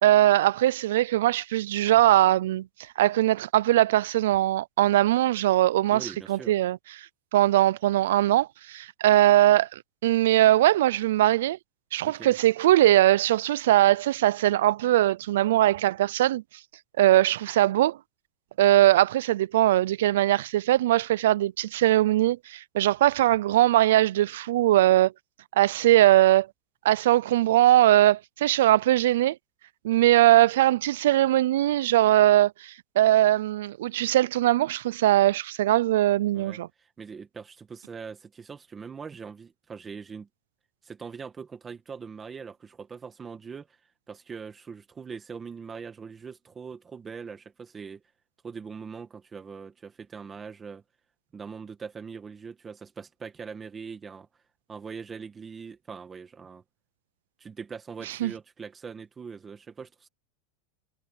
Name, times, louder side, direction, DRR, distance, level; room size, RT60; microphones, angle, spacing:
voice 1, 0.0-2.7 3.0-6.8 7.3-11.6 11.9-16.4 17.0-18.0 18.6-25.1 25.6-26.5 26.8-29.4 29.8-36.7 58.2-58.3, right 14 dB, 85° right, 0.4 m, -21 dB
voice 2, 5.9-6.6 12.0-12.4 36.3-40.3 40.8-43.8 44.1-48.0 48.4-50.8 51.3-54.3 54.7-56.6 57.4-60.1, right 5 dB, 15° right, 1.9 m, -41 dB
supercardioid pair, 150°, 0 cm